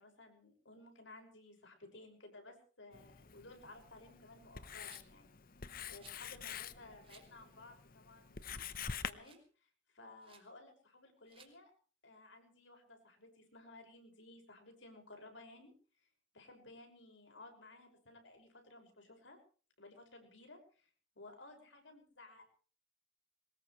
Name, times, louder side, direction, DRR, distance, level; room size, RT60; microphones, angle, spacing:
voice 1, 0.0-5.3 5.9-8.6 8.8-11.7 12.0-16.1 16.3-19.4 19.8-20.9 21.2-22.4, left 2 dB, 75° left, 4 dB, 5.9 m, -57 dB
Writing, 2.9-9.1, left 7 dB, 50° left, 0.9 m, -47 dB
Rattle, 4.9-5.2 6.0-6.2 7.0-7.3 7.8-7.9 8.4-8.7 9.0-9.5 10.2-10.5 11.3-11.5, right 6 dB, 30° right, 3.2 m, -62 dB
22.5 x 20.0 x 3.2 m, 0.40 s
head